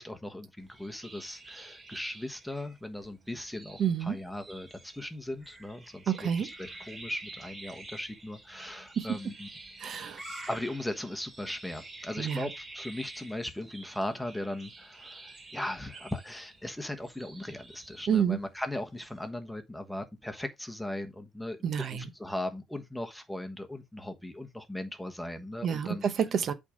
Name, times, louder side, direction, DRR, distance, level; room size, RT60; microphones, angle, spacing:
voice 1, 0.0-9.5 10.5-26.0, left 1 dB, 5° left, 1.2 m, -38 dB
sound 1, 0.6-19.3, right 2 dB, 25° right, 2.7 m, -49 dB
voice 2, 3.8-4.2 6.1-6.5 9.0-9.1 9.8-10.4 12.2-12.5 18.1-18.4 21.6-22.1 25.6-26.5, right 8 dB, 45° right, 0.8 m, -29 dB
8.2 x 3.6 x 5.1 m
cardioid pair, 130°, 0 cm